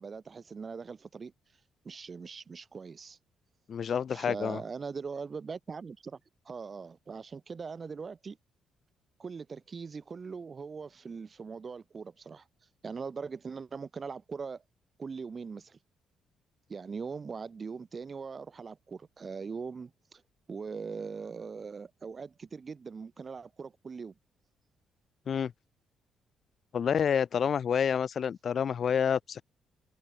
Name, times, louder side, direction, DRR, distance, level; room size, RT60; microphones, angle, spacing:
voice 1, 0.0-1.3 1.8-3.2 4.1-6.2 6.4-8.4 9.2-12.5 12.8-14.6 15.0-15.8 16.7-20.2 20.5-24.1, right 5 dB, 40° right, 3.0 m, -41 dB
voice 2, 3.7-4.6 25.3-25.5 26.7-29.4, left 7 dB, 55° left, 2.8 m, -28 dB
cardioid pair, 90°, 0 cm